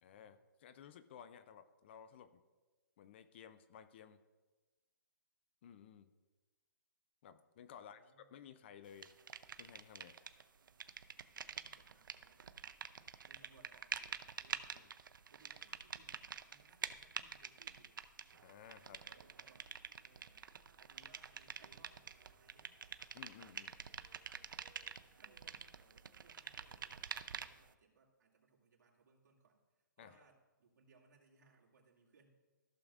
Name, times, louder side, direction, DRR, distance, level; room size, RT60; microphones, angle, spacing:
voice 1, 0.0-2.4 3.0-4.2 5.6-6.1 7.2-9.1 9.6-10.2 14.7-14.8 18.4-19.0 23.1-23.7 30.0-30.2, left 8 dB, 35° left, 12 dB, 0.4 m, -56 dB
voice 2, 7.7-8.3 11.3-12.6 13.2-14.9 15.3-18.0 18.8-19.7 20.0-22.7 24.2-24.7 25.0-32.3, right 4 dB, 65° right, -2 dB, 2.2 m, -69 dB
sound 1, 9.0-10.4 10.7-27.7, right 7 dB, 85° right, 0.5 m, -47 dB
14.5 x 6.7 x 2.4 m, 1.2 s
hypercardioid pair, 160°, 11 cm